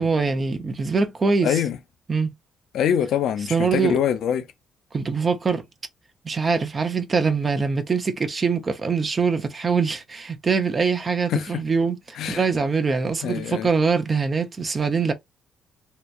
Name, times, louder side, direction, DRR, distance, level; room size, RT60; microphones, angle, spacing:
voice 1, 0.0-1.6 2.1-2.3 3.5-4.0 4.9-5.6 6.2-15.1, right 5 dB, 35° right, 0.5 m, -23 dB
voice 2, 1.4-1.8 2.7-4.4 11.3-11.6 12.2-12.5 13.2-13.7, left 9 dB, 75° left, 0.5 m, -24 dB
2.8 x 2.2 x 2.4 m
cardioid pair, 90°, 0 cm